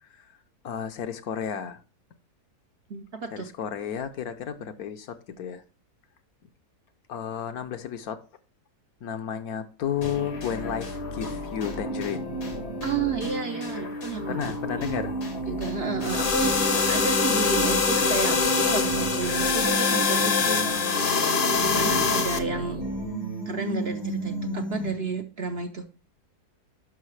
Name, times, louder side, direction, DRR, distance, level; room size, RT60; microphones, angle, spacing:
voice 1, 0.6-1.8 3.3-5.6 7.1-8.2 9.0-12.3 14.3-15.2, left 8 dB, 70° left, 1.3 m, -32 dB
voice 2, 2.9-3.5 12.8-14.8 15.5-20.7 21.6-22.8 23.5-25.9, right 5 dB, 55° right, 0.7 m, -32 dB
sound 1, 10.0-25.1, right 1 dB, 90° left, 2.5 m, -32 dB
sound 2, 16.0-22.4, left 5 dB, 45° left, 0.8 m, -24 dB
11.0 x 5.7 x 3.2 m
omnidirectional pair, 1.7 m